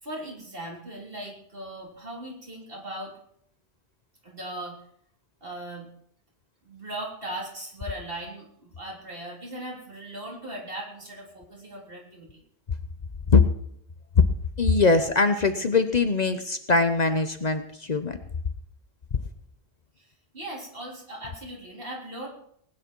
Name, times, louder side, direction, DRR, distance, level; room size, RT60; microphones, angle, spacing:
voice 1, 0.0-3.1 4.2-4.8 5.4-5.9 6.6-12.4 20.0-20.1 20.3-22.3, right 1 dB, 60° right, -2 dB, 3.9 m, -38 dB
voice 2, 14.6-18.2, left 4 dB, 45° left, 8 dB, 0.9 m, -21 dB
19.5 x 9.9 x 4.6 m, 0.68 s
omnidirectional pair, 1.1 m